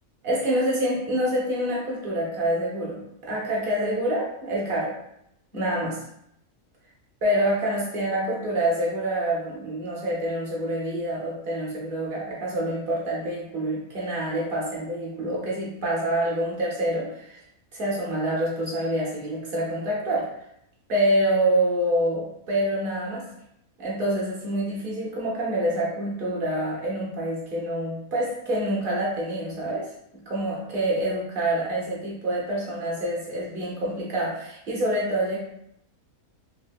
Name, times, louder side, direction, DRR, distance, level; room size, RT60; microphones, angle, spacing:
voice 1, 0.2-5.0 5.5-6.0 7.2-17.4 17.7-20.4 20.9-23.3 23.8-29.9 30.3-35.4, right 1 dB, 45° right, -4 dB, 0.9 m, -26 dB
4.2 x 2.1 x 2.3 m, 0.77 s
omnidirectional pair, 1.5 m